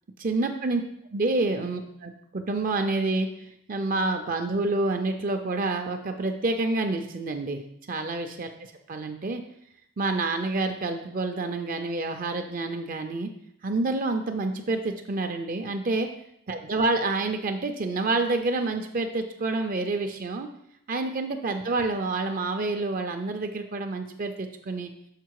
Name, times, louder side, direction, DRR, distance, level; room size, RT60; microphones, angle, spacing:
voice 1, 0.2-0.8 1.1-3.3 3.7-8.5 8.9-9.4 10.0-13.3 13.6-16.1 16.5-20.5 20.9-24.9, right 2 dB, 40° right, 6 dB, 0.5 m, -28 dB
6.6 x 4.3 x 4.7 m, 0.74 s
head